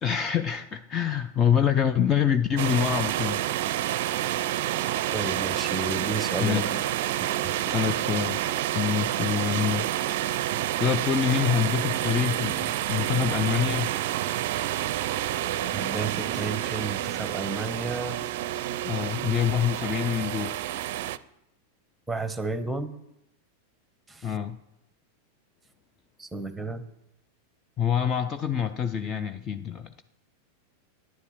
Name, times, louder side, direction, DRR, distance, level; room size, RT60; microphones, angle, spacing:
voice 1, 0.0-3.4 6.4-6.8 7.6-8.4 8.7-9.9 10.8-13.9 18.8-20.6 24.2-24.6 27.8-30.0, left 8 dB, 25° left, 10 dB, 0.5 m, -26 dB
sound 1, 2.6-21.2, right 13 dB, 50° right, 0.5 m, -29 dB
voice 2, 5.1-6.8 7.2-7.8 15.7-18.3 22.1-22.9 24.1-24.3 26.2-26.8, right 2 dB, 5° right, 11 dB, 1.1 m, -33 dB
11.0 x 9.8 x 6.6 m, 0.83 s
figure-of-eight pair, 90°, 0 cm